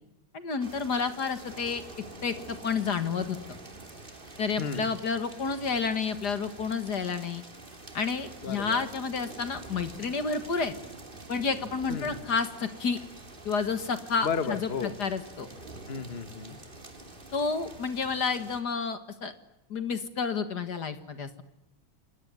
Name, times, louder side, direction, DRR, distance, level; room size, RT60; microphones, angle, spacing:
voice 1, 0.3-1.8 2.2-3.4 4.4-7.4 7.9-10.8 11.3-13.0 13.5-14.7 15.0-15.5 17.3-19.3 19.7-21.4, left 5 dB, 55° left, 10 dB, 2.1 m, -30 dB
sound 1, 0.6-18.6, right 2 dB, 25° right, 3.0 m, -46 dB
voice 2, 4.6-4.9 8.4-8.9 11.9-12.3 14.2-15.0 15.9-16.6, left 5 dB, 30° left, 11 dB, 1.7 m, -33 dB
28.0 x 21.0 x 9.7 m, 0.86 s
omnidirectional pair, 2.3 m